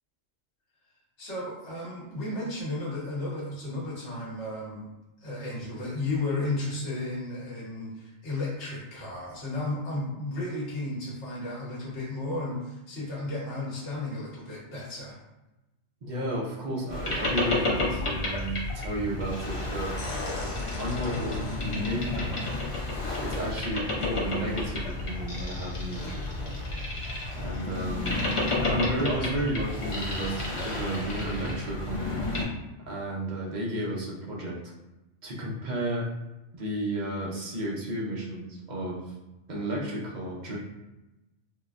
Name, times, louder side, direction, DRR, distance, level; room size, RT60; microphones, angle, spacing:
voice 1, 1.2-4.9 5.2-15.1, left 2 dB, 65° left, -6 dB, 1.2 m, -33 dB
voice 2, 16.0-19.9 20.8-22.4 23.2-26.6 27.3-28.2 28.7-32.2 32.9-34.6 35.2-36.1 36.5-39.1 39.5-40.6, right 1 dB, 50° right, -3 dB, 0.6 m, -32 dB
Boat Water vehicle, 16.9-32.4, left 2 dB, 40° left, 0.5 m, -31 dB
3.8 x 2.1 x 2.4 m, 1.0 s
omnidirectional pair, 1.3 m